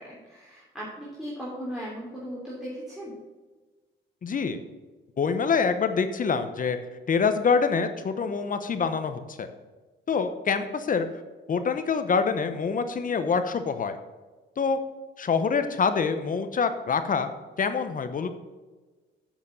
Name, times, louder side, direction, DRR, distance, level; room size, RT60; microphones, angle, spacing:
voice 1, 0.0-3.2, equal, ahead, -7 dB, 3.3 m, -37 dB
voice 2, 4.2-4.6 5.2-6.8 7.1-9.5 10.1-11.1 11.5-14.0 14.6-14.8 15.2-17.3 17.6-18.3, left 5 dB, 45° left, 9 dB, 1.0 m, -25 dB
7.5 x 7.3 x 6.8 m, 1.3 s
cardioid pair, 90°, 20 cm